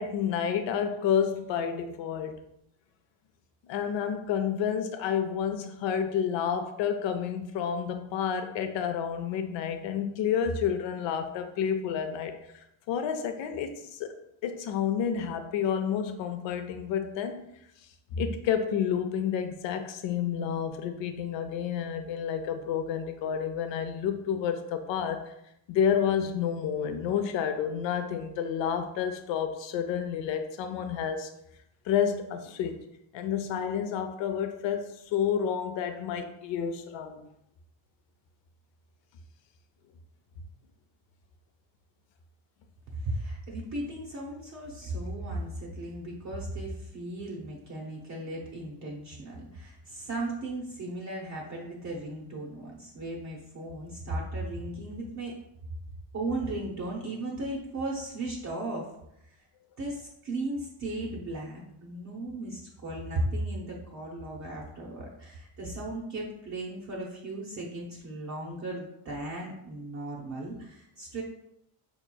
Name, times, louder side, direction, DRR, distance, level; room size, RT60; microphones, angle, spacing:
voice 1, 0.0-2.4 3.7-14.2 14.4-17.5 18.1-25.3 25.7-31.3 31.8-32.8 33.1-37.2, left 8 dB, 65° left, 7 dB, 0.6 m, -30 dB
voice 2, 42.9-55.3 56.1-58.9 59.8-71.2, right 2 dB, 35° right, -3 dB, 0.7 m, -36 dB
4.7 x 3.0 x 2.2 m, 0.80 s
cardioid pair, 120°, 49 cm